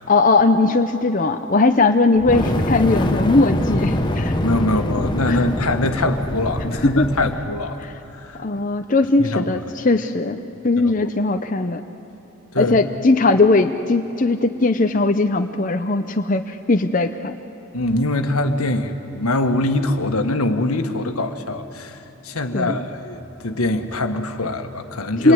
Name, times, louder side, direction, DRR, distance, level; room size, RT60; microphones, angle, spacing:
voice 1, 0.1-4.3 5.3-5.5 6.8-7.1 8.4-10.4 10.6-11.8 12.6-17.4 22.5-22.8 25.2-25.3, left 3 dB, 35° left, 6 dB, 0.7 m, -19 dB
Fire, 2.2-7.4, left 1 dB, 20° left, 1.2 m, -24 dB
voice 2, 4.4-7.8 8.2-8.4 9.2-9.6 10.8-10.9 12.5-12.8 17.7-25.3, left 2 dB, 85° left, 7 dB, 1.6 m, -23 dB
27.0 x 21.5 x 9.6 m, 2.9 s
head